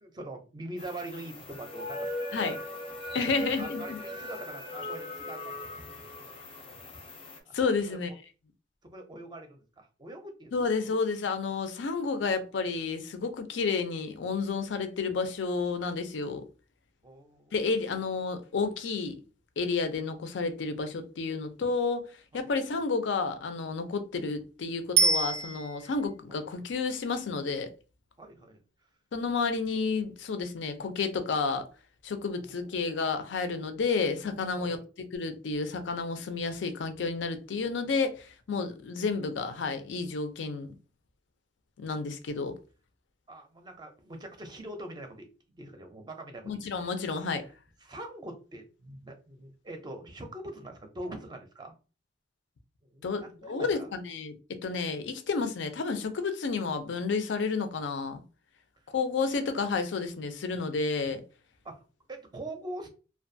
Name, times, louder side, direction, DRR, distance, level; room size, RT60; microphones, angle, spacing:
voice 1, 0.0-2.7 3.6-5.6 6.2-7.0 7.4-7.6 7.9-8.0 8.8-10.5 17.0-17.5 22.3-22.5 28.2-28.6 32.4-33.1 34.5-34.8 37.6-37.7 43.3-45.3 45.6-47.2 47.8-51.7 52.8-53.9 61.6-62.9, right 1 dB, 25° right, 0.4 m, -44 dB
sound 1, 0.8-7.4, left 2 dB, 30° left, 0.5 m, -39 dB
voice 2, 3.1-4.0 7.5-8.1 10.5-16.4 17.5-19.2 19.6-22.1 22.3-27.7 29.1-31.6 32.0-34.8 35.1-40.7 41.8-42.6 46.4-47.5 53.0-54.4 54.6-58.2 58.9-61.2, left 4 dB, 85° left, 0.5 m, -31 dB
Bicycle bell, 25.0-26.1 35.2-35.3, right 4 dB, 80° right, 0.5 m, -26 dB
2.5 x 2.2 x 2.6 m
head